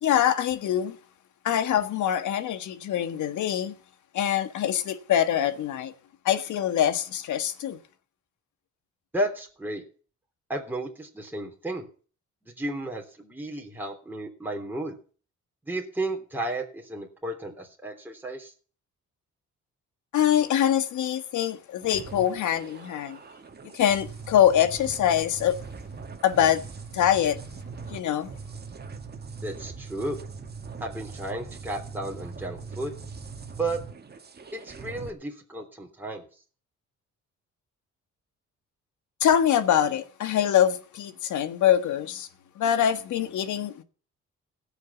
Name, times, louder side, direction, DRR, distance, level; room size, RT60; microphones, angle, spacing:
voice 1, 0.0-1.0 1.4-3.7 4.1-5.9 6.2-7.8 20.1-23.2 23.7-25.6 26.2-26.6 26.9-27.4 27.9-28.3 39.2-42.3 42.6-43.8, left 10 dB, 75° left, 1.6 m, -24 dB
voice 2, 9.1-9.8 10.5-11.8 12.6-15.0 15.7-18.5 29.4-30.2 30.8-32.9 33.6-33.8 34.5-36.2, right 1 dB, 5° right, 3.4 m, -33 dB
sound 1, 21.8-35.1, right 5 dB, 35° right, 1.9 m, -41 dB
17.0 x 6.7 x 7.1 m
cardioid pair, 90°, 30 cm